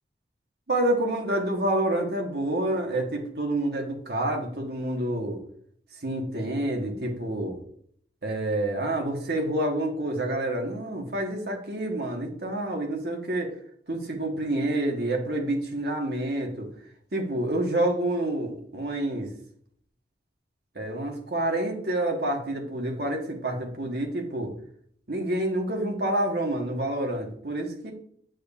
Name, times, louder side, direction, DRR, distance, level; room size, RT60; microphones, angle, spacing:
voice 1, 0.7-5.4 6.0-7.6 8.2-13.5 13.9-16.7 17.1-19.3 20.7-24.5 25.1-27.9, right 1 dB, 60° right, 1 dB, 1.2 m, -28 dB
6.9 x 6.2 x 2.4 m, 0.63 s
head